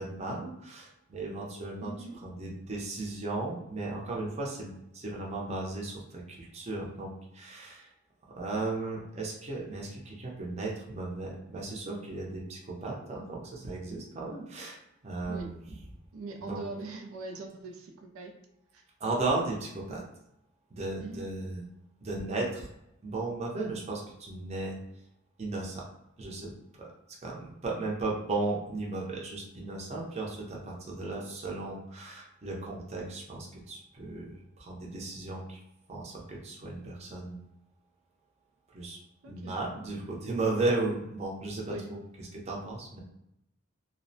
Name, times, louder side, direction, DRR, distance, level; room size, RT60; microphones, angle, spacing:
voice 1, 0.0-7.9 8.4-14.8 15.0-15.7 16.4-16.6 19.0-20.0 20.7-21.6 22.0-22.7 23.0-24.8 25.4-25.9 26.2-26.5 26.8-26.9 27.2-35.6 35.9-37.4 38.7-39.0 39.2-43.0, right 2 dB, 30° right, -2 dB, 0.6 m, -35 dB
voice 2, 1.8-2.2 15.3-15.5 16.1-18.3 18.7-18.8 21.0-21.2 39.2-39.6 41.7-42.0, right 3 dB, 90° right, 3 dB, 0.4 m, -41 dB
2.5 x 2.0 x 2.6 m, 0.81 s
head